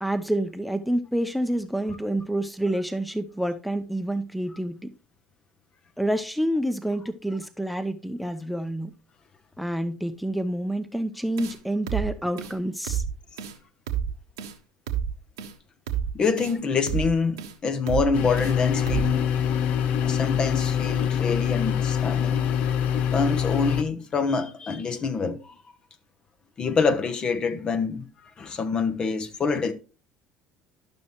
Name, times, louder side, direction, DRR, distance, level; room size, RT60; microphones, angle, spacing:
voice 1, 0.0-4.9 6.0-8.9 9.6-13.0, right 1 dB, ahead, 0.8 m, -28 dB
sound 1, 11.4-11.6 11.9-12.1 12.4-12.5 12.9-13.1 13.4-13.5 13.9-14.1 14.4-14.5 14.9-15.1 15.4-15.5 15.9-16.1 16.4-16.5 16.9-17.1 17.4-17.5 17.9-18.1 18.4-18.5 18.9-19.1, right 9 dB, 80° right, 1.2 m, -29 dB
voice 2, 16.1-19.3 20.0-22.4 23.1-25.4 26.6-29.7, left 4 dB, 40° left, 1.1 m, -26 dB
sound 2, 18.1-23.8, left 8 dB, 60° left, 0.7 m, -24 dB
12.0 x 6.2 x 3.1 m
hypercardioid pair, 65°, 2 cm